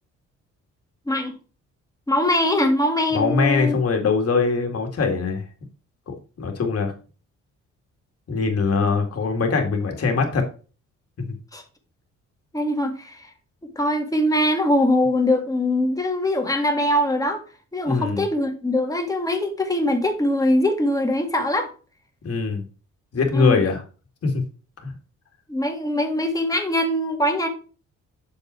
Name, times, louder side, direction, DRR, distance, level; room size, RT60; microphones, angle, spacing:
voice 1, 2.1-3.7 11.5-11.6 12.5-13.3 13.8-17.4 17.7-21.7 23.3-23.6 25.5-27.5, left 1 dB, 10° left, 3 dB, 1.9 m, -22 dB
voice 2, 3.1-5.4 6.1-6.9 8.3-10.4 17.9-18.2 22.2-22.6 23.1-23.8 24.2-24.3 24.8-24.9, left 4 dB, 50° left, 3 dB, 2.2 m, -22 dB
6.8 x 5.3 x 4.5 m, 0.36 s
cardioid pair, 90°, 30 cm